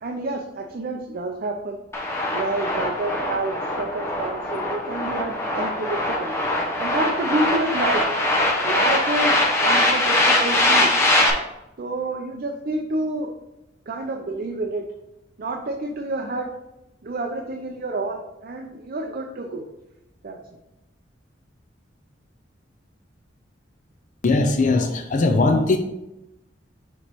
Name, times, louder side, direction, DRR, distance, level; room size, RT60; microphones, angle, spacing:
voice 1, 0.0-1.8 2.3-6.3 6.8-8.0 8.6-10.9 11.8-13.3 13.9-14.8 15.4-16.5 17.0-19.7 20.2-20.4, right 2 dB, 50° right, 1 dB, 0.5 m, -28 dB
sound 1, 1.9-11.3, left 1 dB, 15° left, 0.9 m, -22 dB
voice 2, 24.2-25.8, left 3 dB, 45° left, 5 dB, 0.5 m, -19 dB
6.8 x 3.1 x 4.6 m, 0.91 s
head